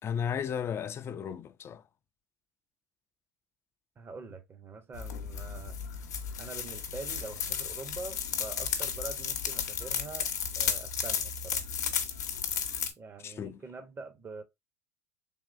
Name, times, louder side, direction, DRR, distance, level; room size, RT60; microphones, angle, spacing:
voice 1, 0.0-1.8 13.2-13.6, left 8 dB, 30° left, 0.3 m, -34 dB
voice 2, 4.0-5.8 6.4-11.6 13.0-14.4, right 3 dB, 25° right, 0.7 m, -44 dB
sound 1, 4.9-12.9, left 7 dB, 85° left, 0.7 m, -34 dB
3.5 x 2.9 x 2.4 m
hypercardioid pair, 85°, 9 cm